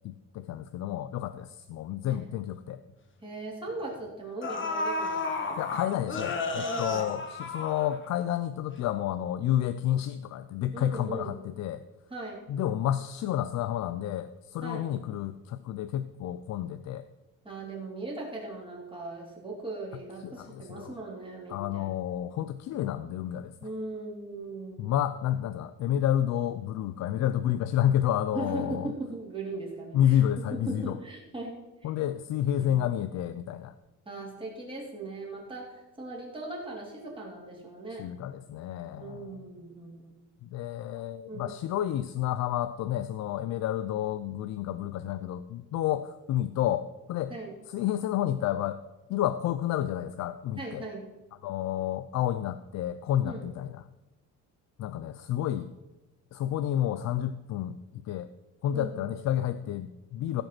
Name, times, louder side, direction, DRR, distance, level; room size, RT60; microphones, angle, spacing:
voice 1, 0.0-2.8 5.6-11.8 12.5-17.0 20.2-20.9 21.5-23.5 24.8-28.9 29.9-31.0 31.8-33.7 38.0-39.4 40.4-47.3 47.7-48.8 49.1-50.8 51.4-53.8 54.8-55.7 56.3-58.3 58.6-60.4, left 11 dB, 55° left, 12 dB, 0.5 m, -30 dB
sound 1, 2.9-3.0 3.9-4.0 4.4-8.3 8.7-8.8, left 3 dB, 35° left, 1.4 m, -32 dB
voice 2, 3.2-5.6 6.6-7.1 10.7-11.4 12.1-12.4 14.6-14.9 17.4-21.9 23.6-24.9 28.3-30.2 30.6-31.9 32.5-32.8 34.0-38.0 38.9-40.1 41.3-41.6 47.3-47.5 50.6-51.1 53.2-53.4 58.7-59.0, right 2 dB, 15° right, -3 dB, 3.2 m, -39 dB
15.5 x 5.2 x 6.0 m, 1.1 s
cardioid pair, 135°, 33 cm